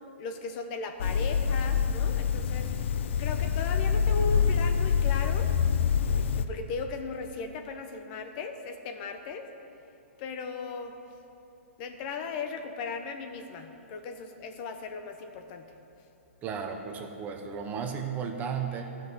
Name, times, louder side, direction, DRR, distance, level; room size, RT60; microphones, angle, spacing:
voice 1, 0.2-2.7 3.2-5.5 6.2-9.5 10.2-10.9 11.8-15.7, left 4 dB, 40° left, 6 dB, 0.9 m, -37 dB
sound 1, 1.0-6.5, left 7 dB, 60° left, 0.6 m, -26 dB
voice 2, 16.4-18.8, right 7 dB, 20° right, 4 dB, 0.9 m, -34 dB
13.0 x 5.7 x 8.0 m, 2.8 s
hypercardioid pair, 145°, 7 cm